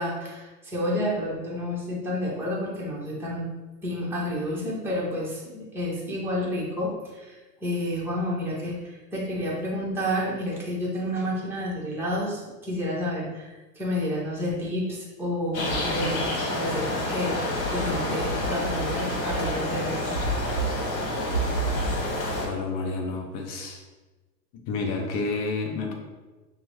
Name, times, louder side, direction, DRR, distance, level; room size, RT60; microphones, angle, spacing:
voice 1, 0.0-3.5 3.8-16.3 16.5-17.3 17.7-20.0, left 1 dB, 5° right, -6 dB, 1.1 m, -30 dB
sound 1, 15.5-22.5, equal, 65° left, 1.3 m, -28 dB
voice 2, 22.4-23.8 24.5-25.9, left 3 dB, 35° left, 1 dB, 0.7 m, -30 dB
6.0 x 2.4 x 3.1 m, 1.2 s
figure-of-eight pair, 95°, 49 cm